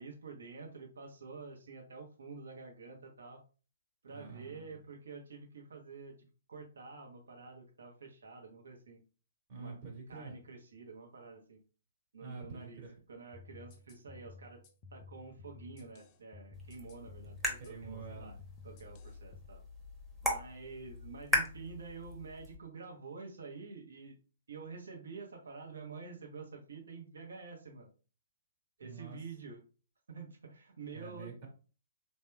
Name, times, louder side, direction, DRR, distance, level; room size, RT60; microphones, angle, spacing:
voice 1, 0.0-3.4 4.0-9.0 9.6-9.8 10.1-11.6 12.1-12.8 13.1-14.6 14.9-18.3 18.6-19.6 20.2-24.1 24.5-27.9 28.8-29.6 30.1-31.3, right 4 dB, 70° right, 2 dB, 0.9 m, -48 dB
voice 2, 4.1-4.7 9.5-10.3 12.2-12.9 17.6-18.3 28.8-29.2 30.9-31.5, right 5 dB, 45° right, -1 dB, 1.5 m, -47 dB
sound 1, 13.3-19.4, left 3 dB, 35° left, 0.5 m, -54 dB
sound 2, 16.5-22.6, equal, ahead, 0.8 m, -39 dB
3.3 x 2.7 x 2.2 m, 0.36 s
figure-of-eight pair, 120°, 0 cm